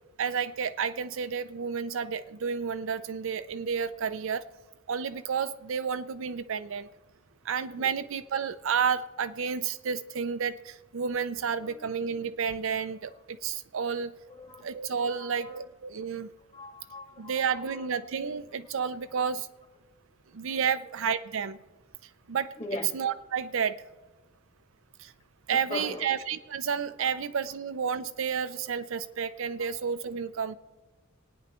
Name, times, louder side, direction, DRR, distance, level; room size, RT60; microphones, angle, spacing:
voice 1, 0.2-4.4 4.9-6.9 7.4-14.1 14.6-16.3 17.2-19.5 20.3-21.6 22.3-22.6 22.9-23.8 25.0-25.1 25.5-30.6, right 6 dB, 70° right, 12 dB, 0.5 m, -31 dB
voice 2, 14.3-14.7 15.0-15.6 16.5-18.0 22.6-22.9 25.5-26.1 27.0-27.1 29.6-29.7, left 2 dB, 35° left, 2 dB, 1.8 m, -40 dB
27.0 x 9.4 x 3.0 m, 1.2 s
head